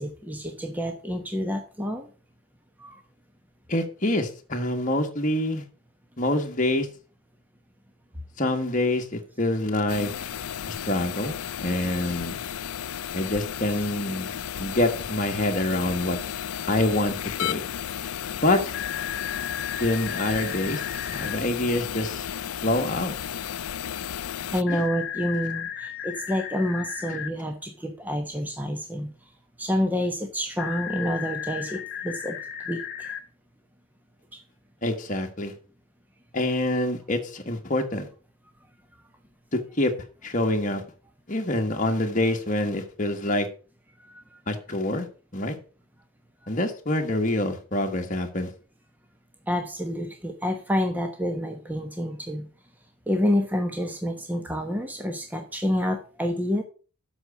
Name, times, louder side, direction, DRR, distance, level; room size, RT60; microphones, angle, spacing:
voice 1, 0.0-2.1 2.8-3.0 24.2-29.1 29.6-32.4 32.7-33.1 34.3-34.4 44.1-44.2 49.5-52.5 53.1-56.6, equal, 10° right, 1.0 m, -28 dB
voice 2, 3.7-5.6 6.2-6.9 8.4-10.1 10.7-12.4 13.1-14.3 14.6-16.2 16.7-17.6 18.4-18.7 19.8-20.8 21.1-22.3 22.6-23.1 24.7-24.8 34.8-35.5 36.3-38.1 39.5-39.9 40.2-40.8 41.3-43.5 44.5-45.1 45.3-45.6 46.5-48.5, left 1 dB, 35° left, 1.6 m, -26 dB
sound 1, 9.9-24.6, left 9 dB, 85° left, 0.5 m, -33 dB
sound 2, 18.7-21.3 24.7-27.3 30.6-33.2, left 9 dB, 55° left, 1.5 m, -34 dB
7.9 x 6.1 x 6.8 m
head